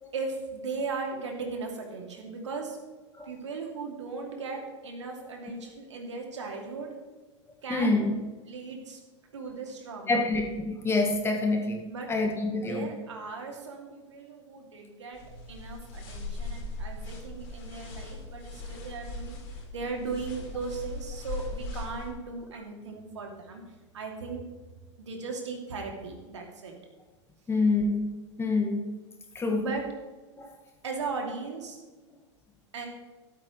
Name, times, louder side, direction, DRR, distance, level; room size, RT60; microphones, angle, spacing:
voice 1, 0.1-2.8 3.3-6.9 7.6-8.2 8.5-9.0 9.3-10.2 11.9-12.1 12.6-15.2 15.5-23.6 23.9-24.5 25.0-26.7 29.6-29.8 30.8-31.8 32.7-32.9, right 4 dB, 70° right, 1 dB, 2.7 m, -37 dB
voice 2, 7.7-8.1 10.1-12.9 27.5-28.9 29.3-29.8 30.4-30.5, left 3 dB, 15° left, 3 dB, 1.8 m, -27 dB
sound 1, 15.1-22.1, left 2 dB, 50° left, 4.1 m, -39 dB
14.0 x 13.0 x 3.2 m, 1.2 s
figure-of-eight pair, 90°, 16 cm